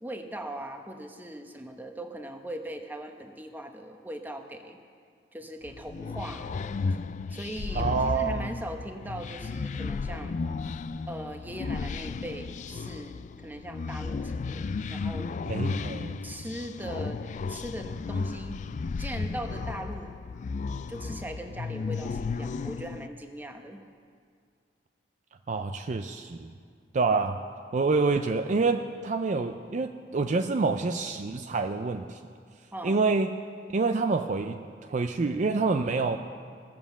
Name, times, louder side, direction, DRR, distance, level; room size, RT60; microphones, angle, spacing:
voice 1, 0.0-4.8 5.3-6.5 7.3-10.4 11.1-15.3 16.2-17.2 17.5-18.6 19.0-20.2 20.9-23.8 32.7-33.0, right 1 dB, 10° right, 5 dB, 0.9 m, -39 dB
sound 1, 5.6-23.1, left 4 dB, 45° left, 0.3 m, -34 dB
voice 2, 7.8-8.5 15.5-16.2 25.5-26.5 26.9-27.4 27.7-32.2 32.8-33.3 33.7-36.2, right 4 dB, 45° right, 7 dB, 0.4 m, -27 dB
18.5 x 7.4 x 7.1 m, 2.1 s
head